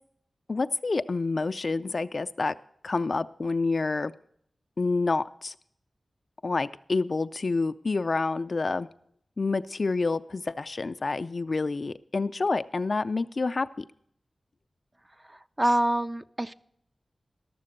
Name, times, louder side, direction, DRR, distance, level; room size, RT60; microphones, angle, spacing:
voice 1, 0.5-2.6 2.8-4.1 4.8-5.5 6.4-8.9 9.4-13.8, left 3 dB, 60° left, 12 dB, 0.4 m, -28 dB
voice 2, 15.3-16.5, right 1 dB, 25° right, 11 dB, 0.4 m, -26 dB
13.0 x 6.7 x 6.5 m, 0.69 s
cardioid pair, 50°, 0 cm